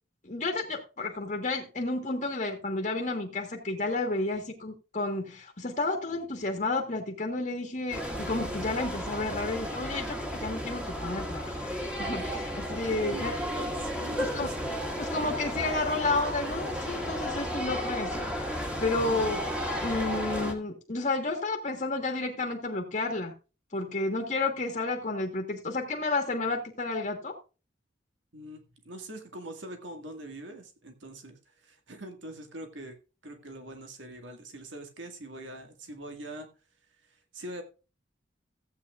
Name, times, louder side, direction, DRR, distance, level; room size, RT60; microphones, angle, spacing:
voice 1, 0.2-13.3 14.2-14.5 15.0-19.5 19.8-23.3 23.7-27.4, left 2 dB, 40° left, 2 dB, 1.4 m, -31 dB
sound 1, 7.9-20.5, equal, 5° right, 1.6 m, -33 dB
voice 2, 12.7-14.9 28.3-32.9 33.2-36.5 37.3-37.6, right 1 dB, 80° right, 5 dB, 1.8 m, -43 dB
15.5 x 8.6 x 2.4 m, 0.32 s
head